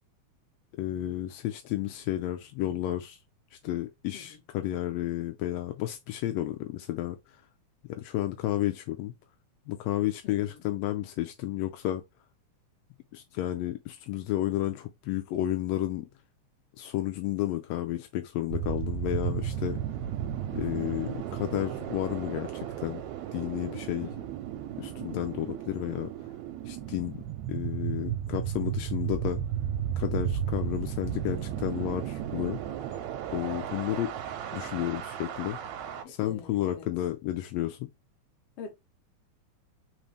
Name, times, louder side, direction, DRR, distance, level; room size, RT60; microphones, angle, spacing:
voice 1, 0.8-3.2 3.6-7.2 7.9-9.1 9.7-12.0 13.1-16.1 16.8-19.8 20.5-23.0 23.3-24.1 24.8-26.1 26.7-27.2 27.5-29.4 30.0-32.6 33.3-34.1 34.5-35.6 36.1-37.9, left 13 dB, 80° left, 1.5 m, -32 dB
voice 2, 10.2-10.7 24.0-24.3 36.0-36.9 38.6-38.8, left 6 dB, 60° left, 1.9 m, -46 dB
sound 1, 18.5-36.0, right 10 dB, 80° right, 1.8 m, -34 dB
4.1 x 3.8 x 3.3 m
omnidirectional pair, 3.4 m